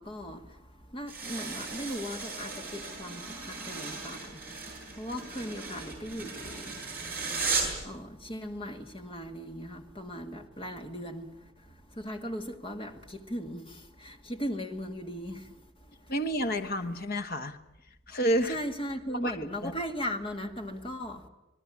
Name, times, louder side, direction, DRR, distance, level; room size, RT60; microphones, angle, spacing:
voice 1, 0.0-4.4 5.0-6.8 7.8-11.5 11.9-15.5 18.5-21.3, equal, 25° left, 2.0 m, -38 dB
sound 1, 1.1-7.8, right 4 dB, 10° right, 7.4 m, -36 dB
voice 2, 16.1-17.6 18.1-18.6 19.2-19.4 19.6-19.7, equal, 45° left, 1.3 m, -29 dB
26.0 x 19.0 x 8.6 m
head